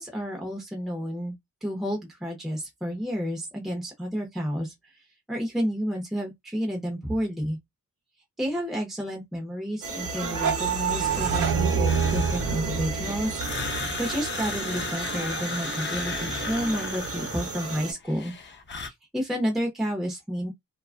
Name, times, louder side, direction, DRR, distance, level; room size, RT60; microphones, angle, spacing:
voice 1, 0.0-1.3 1.6-4.9 5.3-7.6 8.4-18.3 18.8-20.5, equal, ahead, 0.7 m, -31 dB
sound 1, 9.8-17.9, right 6 dB, 45° right, 1.0 m, -33 dB
sound 2, 10.0-14.9, right 5 dB, 80° right, 0.7 m, -28 dB
sound 3, 11.8-17.8 18.0-18.9, left 5 dB, 35° left, 0.5 m, -35 dB
2.4 x 2.2 x 2.4 m
wide cardioid pair, 140°, 31 cm